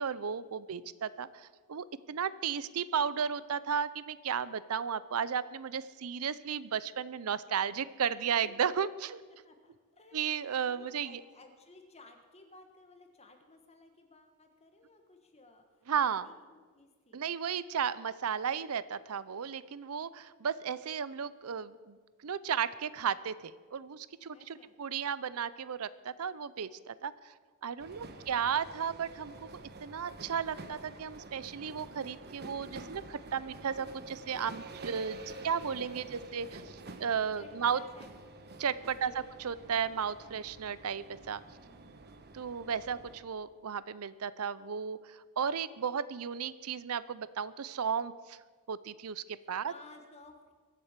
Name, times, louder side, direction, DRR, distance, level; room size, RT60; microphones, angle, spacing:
voice 1, 0.0-9.2 10.1-11.1 15.9-16.3 17.1-27.3 27.6-29.5 29.8-35.2 35.4-37.8 38.6-39.1 39.4-41.4 42.3-48.4 48.7-49.7, right 7 dB, 75° right, 17 dB, 0.5 m, -34 dB
voice 2, 9.4-17.3 24.3-24.7 27.9-28.4 35.0-36.3 37.3-38.1 39.0-39.4 41.6-42.1 49.4-50.5, left 2 dB, 30° left, 5 dB, 1.3 m, -58 dB
sound 1, 27.8-43.2, right 2 dB, 45° right, 1.2 m, -49 dB
23.0 x 7.7 x 7.3 m, 1.5 s
head